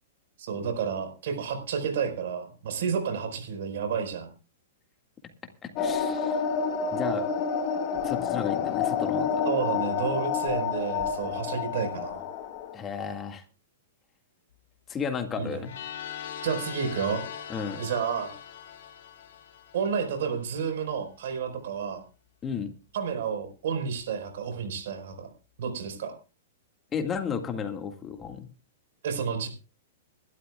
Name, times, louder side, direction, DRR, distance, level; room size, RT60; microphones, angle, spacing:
voice 1, 0.4-4.3 9.4-12.3 15.4-15.6 16.4-17.2 17.8-18.3 19.7-22.0 22.9-25.3 25.6-26.1 29.0-29.5, right 6 dB, 65° right, 7 dB, 4.7 m, -30 dB
voice 2, 5.6-6.4 6.9-7.3 8.0-9.5 12.7-13.4 14.9-15.7 17.5-17.8 22.4-22.7 26.9-28.5, left 6 dB, 20° left, 6 dB, 1.9 m, -33 dB
sound 1, 5.8-12.7, left 6 dB, 40° left, 1.9 m, -29 dB
sound 2, 15.6-20.5, left 9 dB, 70° left, 4.0 m, -41 dB
23.0 x 12.5 x 2.4 m, 0.34 s
hypercardioid pair, 125°, 0 cm